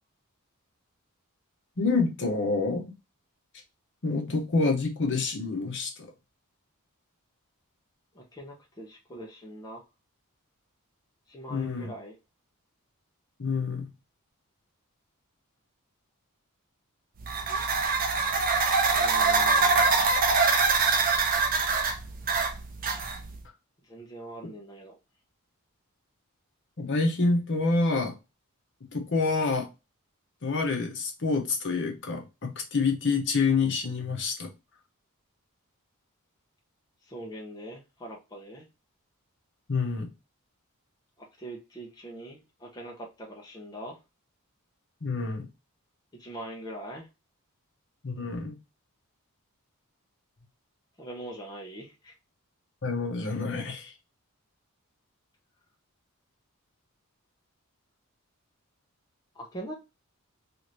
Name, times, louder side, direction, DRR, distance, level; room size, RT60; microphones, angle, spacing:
voice 1, 1.8-2.9 4.0-6.1 11.5-11.9 13.4-13.9 26.8-28.1 28.9-29.7 30.4-34.5 39.7-40.1 45.0-45.5 48.0-48.6 52.8-53.9, left 3 dB, 55° left, 3 dB, 0.8 m, -27 dB
voice 2, 8.1-9.9 11.3-12.2 18.9-19.9 23.8-24.9 37.0-38.7 41.2-44.0 46.2-47.1 51.0-52.1 59.3-59.7, right 1 dB, 20° left, -1 dB, 0.6 m, -42 dB
sound 1, 17.2-23.4, right 4 dB, 40° right, 0.5 m, -24 dB
2.8 x 2.5 x 3.0 m, 0.26 s
head